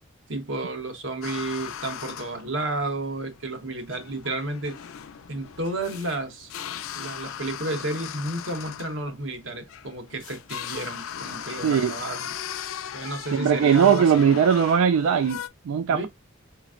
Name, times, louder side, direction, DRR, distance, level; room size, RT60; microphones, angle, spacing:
voice 1, 0.3-4.8 5.3-6.5 6.9-12.3 12.9-14.3 15.9-16.1, right 2 dB, 60° right, 1.1 m, -31 dB
sound 1, 1.2-15.5, left 9 dB, 80° left, 0.4 m, -38 dB
voice 2, 11.6-11.9 13.3-16.1, right 7 dB, 90° right, 0.3 m, -20 dB
4.2 x 3.0 x 2.4 m
head